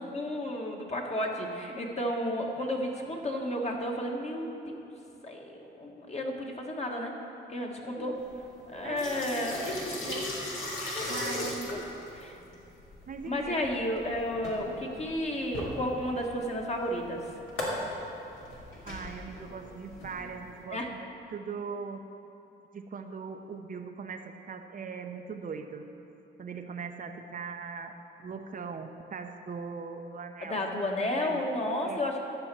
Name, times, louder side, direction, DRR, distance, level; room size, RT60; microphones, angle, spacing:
voice 1, 0.0-4.8 5.2-7.1 7.5-8.2 8.7-9.8 10.9-11.8 12.1-12.4 13.3-17.2 20.7-20.9 30.4-32.2, left 1 dB, 35° left, 0 dB, 1.7 m, -32 dB
sound 1, 8.2-20.6, left 1 dB, 80° left, 2.8 m, -38 dB
voice 2, 8.8-10.3 11.1-11.7 13.1-13.6 18.8-21.0 21.3-22.0 22.7-25.9 26.4-27.9 28.2-30.6 31.2-31.4 31.8-32.0, right 5 dB, 45° right, 5 dB, 0.7 m, -40 dB
12.5 x 5.8 x 7.6 m, 2.9 s
cardioid pair, 90°, 20 cm